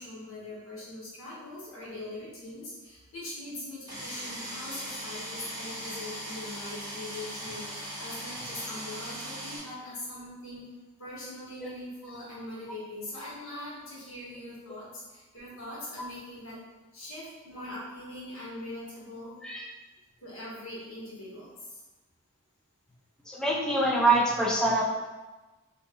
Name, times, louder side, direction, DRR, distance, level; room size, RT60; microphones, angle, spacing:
voice 1, 0.0-10.6 11.0-16.6 16.9-19.3 20.2-21.8, left 1 dB, 70° left, -7 dB, 1.1 m, -42 dB
sound 1, 3.9-9.6, equal, 20° right, 0.9 m, -39 dB
voice 2, 23.3-24.8, right 2 dB, 5° left, -2 dB, 0.3 m, -25 dB
2.5 x 2.1 x 3.5 m, 1.2 s
head